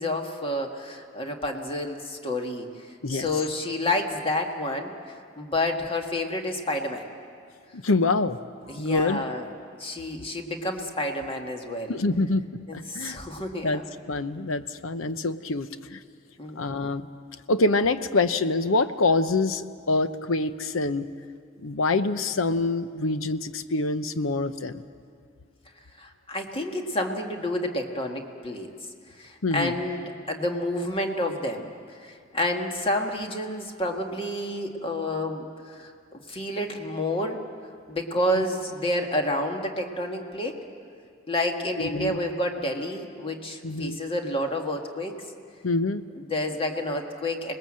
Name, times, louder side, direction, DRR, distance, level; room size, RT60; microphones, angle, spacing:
voice 1, 0.0-7.1 8.7-9.5 9.8-12.0 12.7-13.8 16.4-16.6 26.0-28.7 29.2-37.4 37.9-40.6 41.3-45.1 46.2-47.6, left 1 dB, 30° left, 3 dB, 1.8 m, -29 dB
voice 2, 7.7-8.4 8.7-9.2 11.9-12.4 12.7-13.2 13.6-13.8 14.1-16.0 16.6-17.1 17.5-21.1 21.6-24.8 29.4-29.8 38.4-38.5 41.8-42.2 43.6-44.0 45.6-46.0, left 2 dB, 80° left, 11 dB, 0.8 m, -25 dB
26.5 x 20.0 x 7.6 m, 2.2 s
head